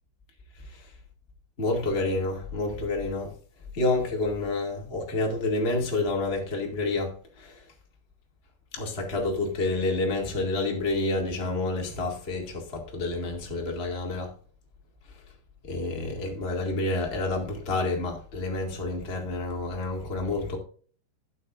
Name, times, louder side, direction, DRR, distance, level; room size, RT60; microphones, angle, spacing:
voice 1, 1.6-3.3 3.7-7.6 8.7-14.3 15.6-20.6, left 2 dB, 45° left, 0.7 m, -29 dB
13.5 x 8.4 x 2.5 m
omnidirectional pair, 5.4 m